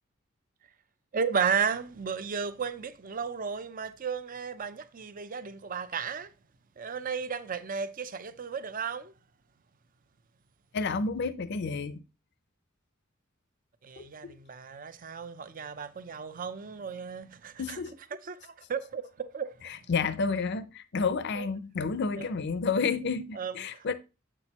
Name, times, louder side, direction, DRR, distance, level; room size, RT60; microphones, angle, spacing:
voice 1, 1.1-6.3 6.8-9.1 13.8-17.8 18.2-19.7 21.3-21.5 22.2-22.3 23.3-23.9, right 6 dB, 45° right, 0.6 m, -34 dB
voice 2, 10.7-12.0 14.0-14.4 17.6-17.9 19.6-23.9, left 4 dB, 55° left, 0.5 m, -30 dB
7.9 x 6.1 x 2.9 m
head